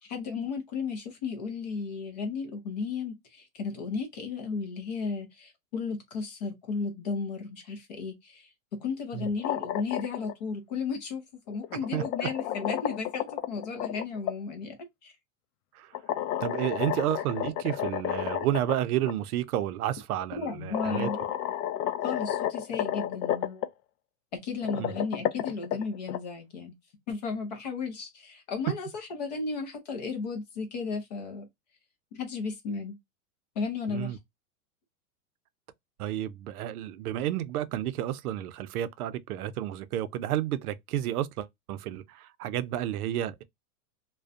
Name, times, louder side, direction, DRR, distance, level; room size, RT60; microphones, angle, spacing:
voice 1, 0.0-8.5 8.8-14.7 15.0-15.1 20.4-21.2 22.0-23.6 24.4-26.7 27.1-31.5 32.1-32.9 33.6-34.2, left 4 dB, 30° left, 0.4 m, -34 dB
sound 1, 9.2-10.3 11.5-14.4 15.9-18.8 19.1-19.2 20.2-20.3 20.7-23.7 24.5-26.2, left 11 dB, 85° left, 0.5 m, -31 dB
voice 2, 11.7-12.3 15.7-15.9 16.4-21.1 24.8-24.9 33.9-34.2 36.0-43.4, right 12 dB, 80° right, 0.5 m, -31 dB
2.5 x 2.2 x 2.3 m
supercardioid pair, 170°, 44 cm